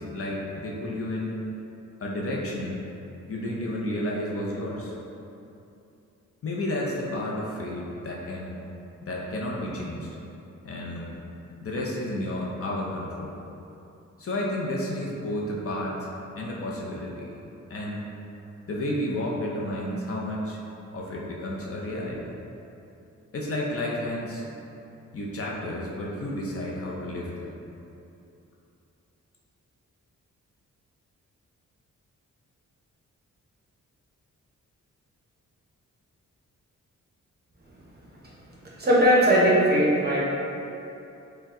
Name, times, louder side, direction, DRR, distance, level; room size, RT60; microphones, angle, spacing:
voice 1, 0.0-1.4 2.0-2.8 3.3-4.9 6.4-8.6 9.0-10.1 10.6-11.2 11.6-13.4 14.2-17.4 17.7-18.1 18.7-20.6 20.9-22.4 23.3-24.5 25.1-27.5, left 1 dB, 45° left, -3 dB, 0.6 m, -31 dB
voice 2, 38.8-40.2, equal, 30° right, -5 dB, 0.7 m, -19 dB
4.4 x 2.2 x 3.6 m, 2.8 s
wide cardioid pair, 125°, 31 cm